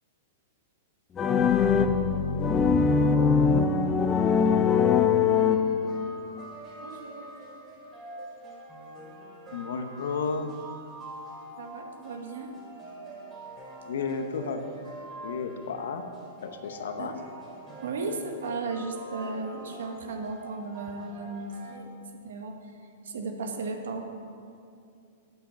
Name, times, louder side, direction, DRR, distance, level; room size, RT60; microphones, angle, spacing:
sound 1, 1.2-6.1, left 6 dB, 20° left, 0.5 m, -22 dB
sound 2, 5.4-21.8, right 1 dB, 25° right, 2.7 m, -45 dB
voice 1, 6.8-7.3 11.6-12.5 17.0-17.2 17.8-21.9 22.1-24.1, right 3 dB, 80° right, 4 dB, 1.1 m, -36 dB
voice 2, 9.5-10.5 13.9-14.7 15.2-16.1 16.4-17.1, left 5 dB, 75° left, 7 dB, 0.9 m, -32 dB
8.8 x 5.8 x 6.9 m, 2.5 s
hypercardioid pair, 135°, 0 cm